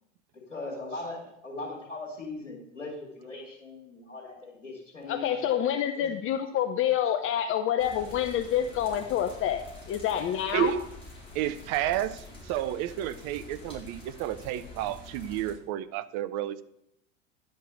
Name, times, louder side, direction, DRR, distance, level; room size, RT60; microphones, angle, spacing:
voice 1, 0.5-1.2 1.4-5.3 6.0-6.1, left 2 dB, 85° left, -6 dB, 2.5 m, -39 dB
voice 2, 5.1-10.8, left 10 dB, 35° left, 10 dB, 0.7 m, -27 dB
sound 1, 7.8-15.5, left 2 dB, 15° left, 4.1 m, -47 dB
voice 3, 11.3-16.6, right 12 dB, 45° right, 14 dB, 0.7 m, -31 dB
10.5 x 5.3 x 6.5 m, 0.80 s
figure-of-eight pair, 80°, 37 cm